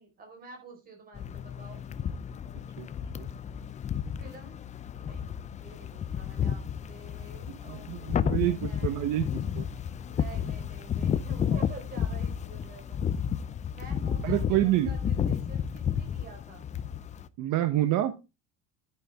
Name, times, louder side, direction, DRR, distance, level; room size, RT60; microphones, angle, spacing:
voice 1, 0.0-1.8 4.2-4.6 4.9-9.0 10.0-13.0 13.7-16.6, right 3 dB, 25° right, 3 dB, 4.7 m, -49 dB
sound 1, 1.1-17.3, left 8 dB, 20° left, 0.5 m, -32 dB
voice 2, 7.7-9.7 14.2-14.9 17.4-18.1, right 14 dB, 65° right, 10 dB, 1.2 m, -27 dB
11.0 x 9.4 x 3.6 m, 0.27 s
cardioid pair, 180°, 32 cm